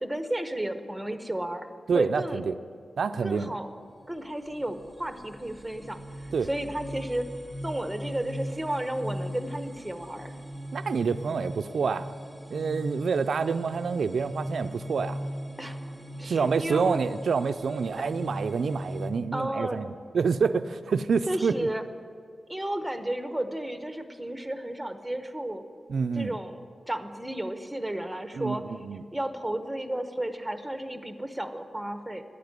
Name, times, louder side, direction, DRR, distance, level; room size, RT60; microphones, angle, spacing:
voice 1, 0.0-1.7 1.9-2.4 3.2-3.7 4.1-6.0 6.5-7.3 7.6-10.3 15.6-17.0 18.0-18.1 19.3-19.8 21.3-21.8 22.5-25.6 26.1-26.6 26.9-28.6 29.1-32.2, right 1 dB, 5° right, 8 dB, 0.9 m, -33 dB
voice 2, 1.9-2.5 3.0-3.5 6.3-6.5 10.7-12.1 12.5-15.2 16.2-21.5 25.9-26.4 28.3-29.0, right 5 dB, 80° right, 9 dB, 0.4 m, -27 dB
sound 1, 3.8-19.1, equal, 10° left, 1.2 m, -39 dB
12.0 x 9.6 x 9.6 m, 2.2 s
wide cardioid pair, 130°, 0 cm